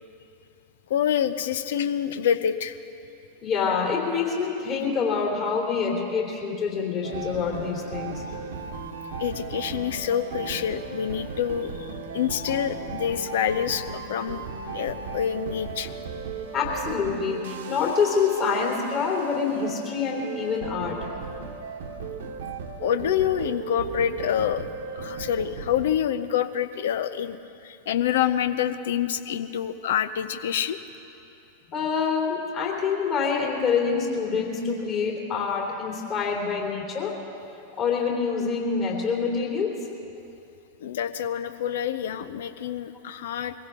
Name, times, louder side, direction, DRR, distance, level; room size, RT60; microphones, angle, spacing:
voice 1, 0.9-2.8 9.2-14.4 14.7-15.9 22.8-27.4 27.6-30.8 40.8-43.5, left 9 dB, 60° left, 11 dB, 0.7 m, -27 dB
voice 2, 3.4-8.2 16.5-21.0 31.7-37.1 37.8-39.7, left 5 dB, 35° left, -2 dB, 3.3 m, -26 dB
sound 1, 7.0-25.9, right 5 dB, 60° right, 1.2 m, -36 dB
23.5 x 16.0 x 3.8 m, 2.7 s
figure-of-eight pair, 90°, 0 cm